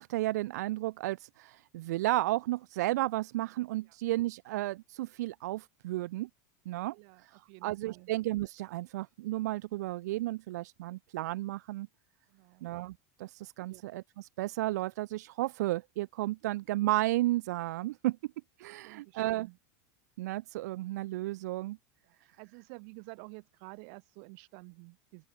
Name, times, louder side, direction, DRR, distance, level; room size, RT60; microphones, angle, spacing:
voice 1, 0.0-6.3 6.6-6.9 7.2-7.3 7.6-11.9 12.6-18.2 18.6-19.5 20.2-21.8, right 17 dB, 80° right, 1.5 m, -33 dB
voice 2, 6.9-8.1 12.3-12.7 13.7-13.8 16.4-16.5 18.7-19.6 22.0-25.2, right 40 dB or more, 60° right, 7.3 m, -51 dB
open air
supercardioid pair, 145°, 9 cm